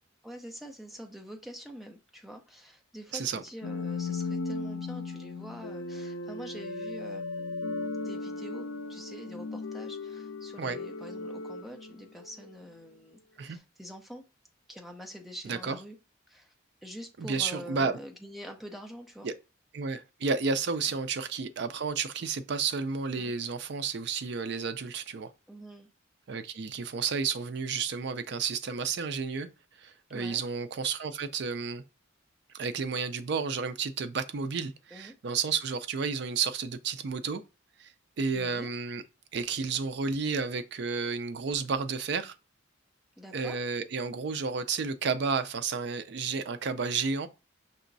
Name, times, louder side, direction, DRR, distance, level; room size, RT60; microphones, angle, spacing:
voice 1, 0.2-14.2 14.7-16.0 16.3-16.5 16.8-19.3 23.2-23.3 25.5-25.9 30.1-30.4 34.9-35.1 38.3-38.7 43.2-43.6, equal, ahead, 0.6 m, -45 dB
sound 1, 3.6-12.6, left 3 dB, 75° left, 0.5 m, -37 dB
voice 2, 15.4-15.8 17.2-18.0 19.2-19.3 19.7-25.3 26.3-29.5 29.8-31.8 32.5-37.4 37.8-37.9 38.2-39.0 39.3-42.3 43.3-47.3, right 5 dB, 55° right, 0.4 m, -31 dB
5.5 x 3.0 x 2.6 m
head